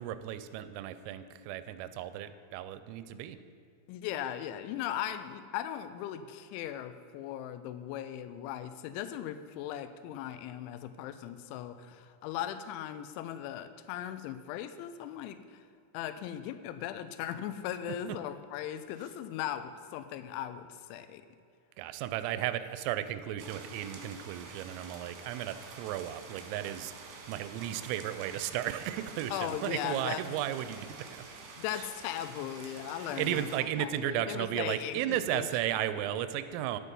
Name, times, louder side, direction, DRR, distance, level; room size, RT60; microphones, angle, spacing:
voice 1, 0.0-3.4 17.9-18.0 21.8-31.2 31.7-31.8 33.0-36.8, right 12 dB, 90° right, 12 dB, 3.2 m, -35 dB
voice 2, 3.9-15.7 15.9-21.2 29.3-30.4 31.6-35.5, left 11 dB, 85° left, 11 dB, 2.8 m, -38 dB
sound 1, 23.4-33.6, right 4 dB, 65° right, 2.8 m, -48 dB
10.5 x 8.3 x 5.4 m, 2.4 s
omnidirectional pair, 5.7 m